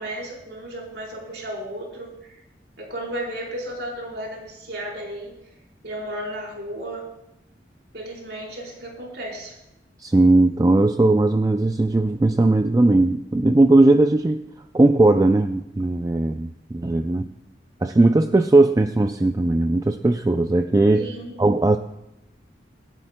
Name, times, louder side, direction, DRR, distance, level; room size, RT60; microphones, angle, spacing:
voice 1, 0.0-2.4 2.8-5.4 5.8-7.1 7.9-9.6 20.9-21.4, right 1 dB, 70° right, -2 dB, 4.2 m, -34 dB
voice 2, 10.0-14.4 14.7-17.3 17.8-21.1 21.4-21.8, right 2 dB, 20° right, 7 dB, 0.3 m, -18 dB
25.0 x 10.5 x 2.2 m, 0.86 s
head